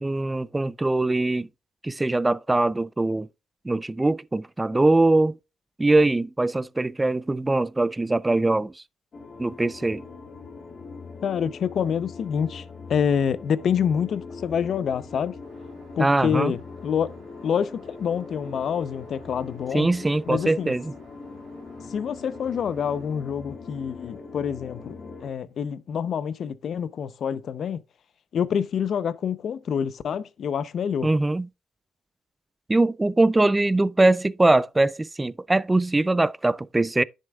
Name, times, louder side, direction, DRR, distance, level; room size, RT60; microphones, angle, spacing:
voice 1, 0.0-1.5 1.8-3.3 3.6-5.4 5.8-8.7 9.4-10.0 16.0-16.5 19.7-20.9 31.0-31.5 32.7-37.0, right 2 dB, 15° right, 0.3 m, -22 dB
sound 1, 9.1-25.3, left 4 dB, 45° left, 1.4 m, -41 dB
voice 2, 11.2-12.6 12.9-15.4 16.0-17.1 17.4-19.9 20.3-20.7 21.9-24.9 25.2-27.8 28.3-31.1, left 7 dB, 60° left, 0.6 m, -27 dB
Aircraft, 15.4-23.2, right 4 dB, 85° right, 2.5 m, -55 dB
10.5 x 6.5 x 2.3 m
cardioid pair, 90°, 0 cm